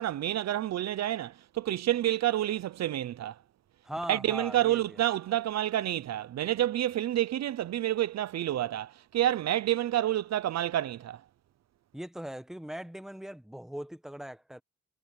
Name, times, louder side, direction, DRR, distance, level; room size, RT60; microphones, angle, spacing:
voice 1, 0.0-3.4 4.1-11.2, right 13 dB, 60° right, 0.7 m, -29 dB
voice 2, 3.8-5.0 11.9-14.6, equal, ahead, 1.4 m, -40 dB
cardioid pair, 90°, 30 cm